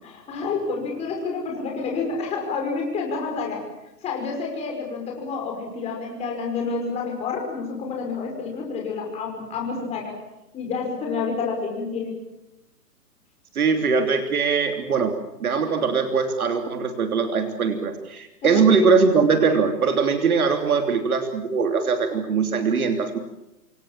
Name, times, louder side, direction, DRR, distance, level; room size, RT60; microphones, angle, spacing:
voice 1, 0.0-3.6 4.0-10.2 10.5-12.2 18.4-18.7, left 4 dB, 15° left, 1 dB, 5.5 m, -29 dB
voice 2, 13.5-15.1 15.4-23.2, right 5 dB, 60° right, 5 dB, 3.3 m, -21 dB
27.5 x 23.5 x 7.5 m, 0.91 s
hypercardioid pair, 170°, 49 cm